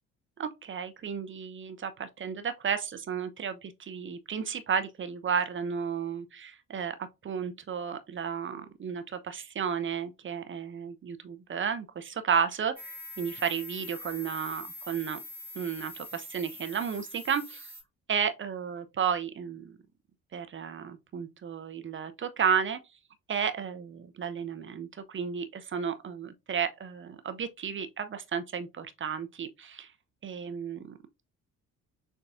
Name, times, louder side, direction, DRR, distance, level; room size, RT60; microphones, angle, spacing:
voice 1, 0.4-7.0 7.2-15.2 15.5-17.7 18.1-19.8 20.3-22.8 23.3-29.9 30.2-31.0, right 7 dB, 30° right, 0.6 m, -33 dB
sound 1, 12.8-17.8, left 2 dB, 5° right, 1.7 m, -44 dB
6.6 x 2.3 x 2.5 m
figure-of-eight pair, 50°, 42 cm